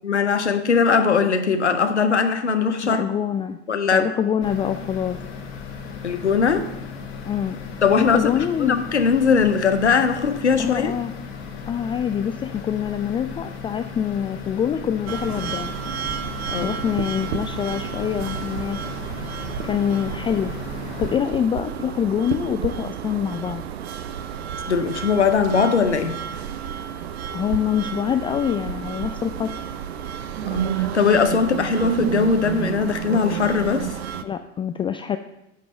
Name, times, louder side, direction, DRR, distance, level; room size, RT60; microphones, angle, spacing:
voice 1, 0.0-3.0 3.7-4.1 6.0-6.7 7.8-8.3 8.6-10.9 16.5-16.8 24.7-26.2 30.5-33.9, left 5 dB, 85° left, 8 dB, 0.7 m, -20 dB
voice 2, 2.8-3.6 3.9-5.2 7.2-7.6 8.0-8.8 10.6-11.1 11.7-15.7 16.6-18.8 19.6-20.5 21.0-23.6 27.3-29.5 34.2-35.2, left 8 dB, 15° left, 8 dB, 0.3 m, -25 dB
sound 1, 4.4-21.2, left 5 dB, 65° left, 1.5 m, -36 dB
sound 2, 15.1-34.2, right 9 dB, 70° right, 0.6 m, -30 dB
8.5 x 5.9 x 7.2 m, 0.89 s
figure-of-eight pair, 65°, 33 cm